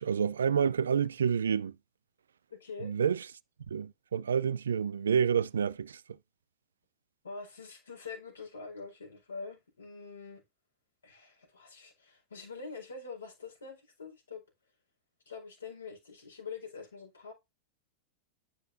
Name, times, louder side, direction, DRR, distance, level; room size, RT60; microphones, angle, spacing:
voice 1, 0.0-1.7 2.8-3.3 3.7-6.0, right 7 dB, 85° right, 0.4 m, -28 dB
voice 2, 2.5-2.9 7.2-10.4 11.0-14.4 15.3-17.3, left 4 dB, 90° left, 4.6 m, -45 dB
9.3 x 6.9 x 2.6 m
hypercardioid pair, 100°, 0 cm